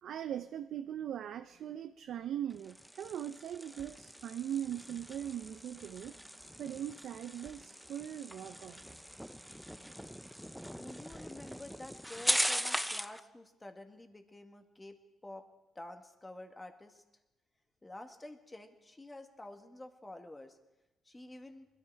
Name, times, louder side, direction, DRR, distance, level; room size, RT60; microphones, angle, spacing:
voice 1, 0.0-6.2 6.6-9.0, right 10 dB, 70° right, 9 dB, 0.5 m, -40 dB
sound 1, 2.5-13.2, equal, ahead, 0.6 m, -39 dB
voice 2, 10.6-15.4 15.7-17.0 17.8-20.6 21.0-21.7, left 1 dB, 15° left, 6 dB, 1.6 m, -49 dB
21.0 x 13.5 x 4.6 m, 1.0 s
cardioid pair, 90°, 0 cm